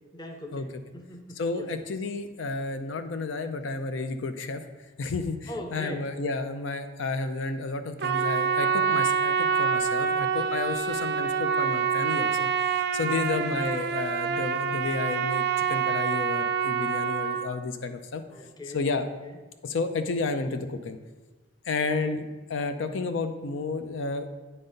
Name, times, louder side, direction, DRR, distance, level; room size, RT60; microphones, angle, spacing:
voice 1, 0.1-1.7 5.5-6.0 13.1-13.5 18.3-18.8 22.0-22.2, left 1 dB, 20° left, 4 dB, 0.7 m, -40 dB
voice 2, 1.3-4.6 5.0-12.5 12.9-18.2 18.7-19.1 19.6-21.0 21.7-24.3, left 3 dB, 75° left, 8 dB, 0.5 m, -31 dB
Trumpet, 8.0-17.5, right 6 dB, 55° right, 0.4 m, -26 dB
8.7 x 4.1 x 5.1 m, 1.2 s
head